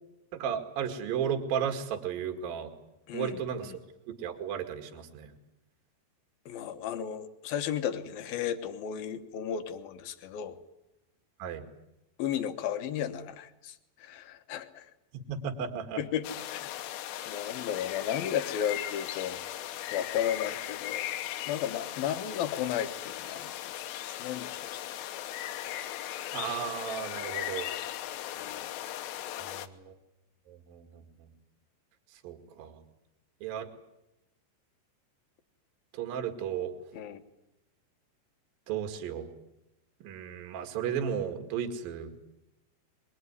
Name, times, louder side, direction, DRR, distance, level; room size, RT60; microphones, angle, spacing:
voice 1, 0.3-2.7 3.1-3.8 4.1-5.3 11.4-11.6 15.3-16.0 26.3-27.7 29.4-29.9 30.5-31.3 32.2-32.8 33.4-33.7 35.9-36.7 38.7-39.3 40.0-42.1, right 8 dB, 55° right, 5 dB, 3.3 m, -34 dB
voice 2, 3.1-3.8 6.5-10.6 12.2-14.9 16.0-16.7 17.3-19.4 19.9-21.1 21.5-23.8 24.2-24.8 28.4-28.7 36.9-37.2, left 9 dB, 65° left, 9 dB, 2.5 m, -34 dB
sound 1, 16.2-29.7, left 12 dB, 85° left, 3.6 m, -38 dB
23.5 x 21.5 x 9.6 m, 0.91 s
omnidirectional pair, 5.5 m